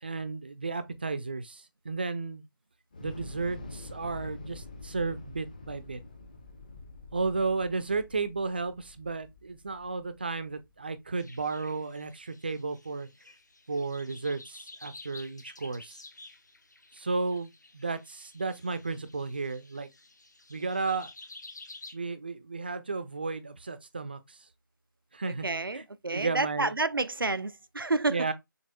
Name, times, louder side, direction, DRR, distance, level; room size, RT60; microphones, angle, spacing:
voice 1, 0.0-2.5 3.0-6.0 7.1-13.1 13.7-16.0 16.9-19.9 20.5-21.1 21.9-24.4 25.1-25.5 25.7-25.8 26.1-26.7 28.1-28.3, right 4 dB, 25° right, 0.4 m, -33 dB
Thunder / Explosion, 2.9-11.1, left 2 dB, 20° left, 0.6 m, -47 dB
sound 1, 11.2-21.9, left 2 dB, 55° left, 1.0 m, -51 dB
voice 2, 25.4-28.3, right 3 dB, 85° right, 0.4 m, -29 dB
6.6 x 3.0 x 2.2 m
figure-of-eight pair, 155°, 11 cm